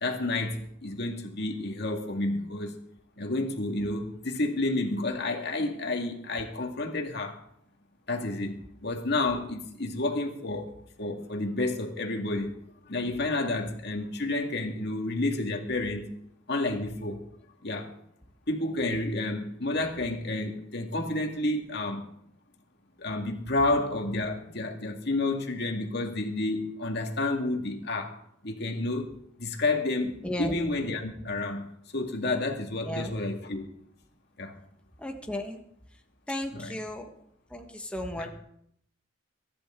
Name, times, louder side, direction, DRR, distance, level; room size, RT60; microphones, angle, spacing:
voice 1, 0.0-2.8 3.2-7.4 8.1-10.7 11.0-12.6 12.9-16.1 16.5-17.2 17.6-17.9 18.5-22.1 23.0-28.1 28.4-29.1 29.4-33.7 34.4-34.6 36.5-36.7 38.2-38.3, left 2 dB, 60° left, 3 dB, 2.2 m, -30 dB
voice 2, 30.2-30.5 32.8-33.1 35.0-35.6 36.3-37.1 37.5-38.3, left 1 dB, 5° left, 3 dB, 1.5 m, -34 dB
22.5 x 11.5 x 3.8 m, 0.71 s
head